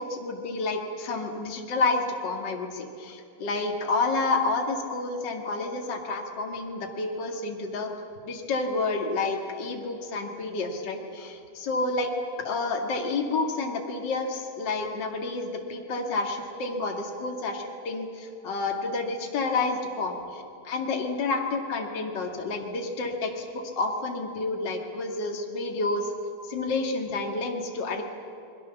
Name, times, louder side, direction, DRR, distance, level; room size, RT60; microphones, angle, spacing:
voice 1, 0.0-7.9 8.2-12.1 12.4-26.1 26.5-28.0, left 3 dB, 35° left, 2 dB, 2.5 m, -29 dB
28.5 x 22.0 x 7.2 m, 2.5 s
omnidirectional pair, 3.7 m